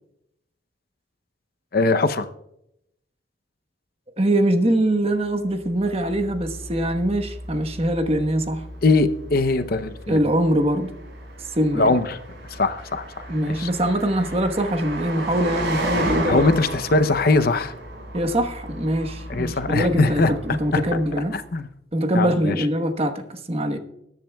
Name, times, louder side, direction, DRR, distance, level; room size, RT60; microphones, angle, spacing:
voice 1, 1.7-2.3 8.8-10.2 11.7-12.2 12.5-13.0 13.5-13.7 16.3-17.7 19.3-20.3 20.7-20.8 21.3-21.7 22.1-22.7, left 3 dB, 55° left, 11 dB, 0.7 m, -21 dB
voice 2, 4.2-8.6 10.1-10.9 11.4-11.9 13.3-16.4 18.1-21.4 21.9-23.8, right 1 dB, 35° right, 7 dB, 1.1 m, -23 dB
Car passing by, 5.6-21.4, right 1 dB, 70° right, 5.1 m, -34 dB
21.0 x 10.5 x 2.3 m, 0.79 s
head